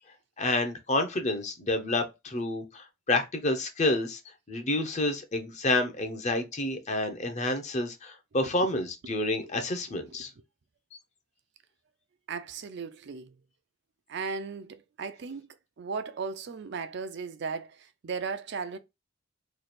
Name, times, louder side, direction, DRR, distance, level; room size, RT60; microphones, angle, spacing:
voice 1, 0.4-4.2 4.5-10.3 10.9-11.0, left 2 dB, 35° left, 0.7 m, -29 dB
voice 2, 12.3-13.3 14.1-15.5 15.8-18.8, right 5 dB, 60° right, 0.4 m, -36 dB
3.2 x 2.4 x 4.1 m
head